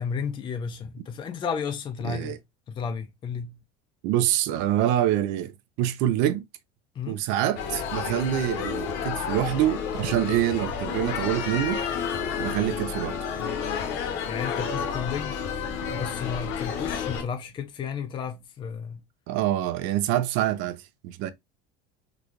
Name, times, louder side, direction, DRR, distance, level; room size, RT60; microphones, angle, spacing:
voice 1, 0.0-2.4 2.7-3.6 6.9-7.2 14.3-15.4 15.9-19.0, left 6 dB, 25° left, 0.5 m, -33 dB
voice 2, 2.0-2.4 4.0-6.4 7.1-11.8 12.4-13.2 19.3-21.3, right 12 dB, 65° right, 0.6 m, -26 dB
sound 1, 7.6-17.2, left 7 dB, 55° left, 0.9 m, -31 dB
3.9 x 2.3 x 3.0 m
cardioid pair, 150°, 21 cm